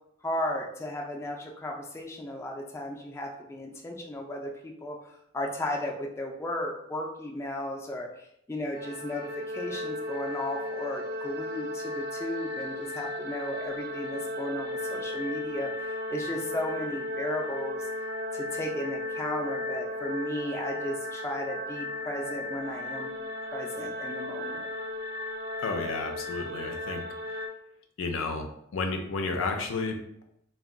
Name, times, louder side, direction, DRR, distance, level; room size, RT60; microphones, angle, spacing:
voice 1, 0.2-17.9 18.3-23.1 23.4-24.7, left 1 dB, 15° left, 0 dB, 0.3 m, -35 dB
sound 1, 8.7-27.5, left 1 dB, 55° right, 0.5 m, -35 dB
voice 2, 25.6-27.0 28.0-30.0, left 3 dB, 80° left, 4 dB, 0.5 m, -32 dB
2.2 x 2.2 x 3.6 m, 0.75 s
head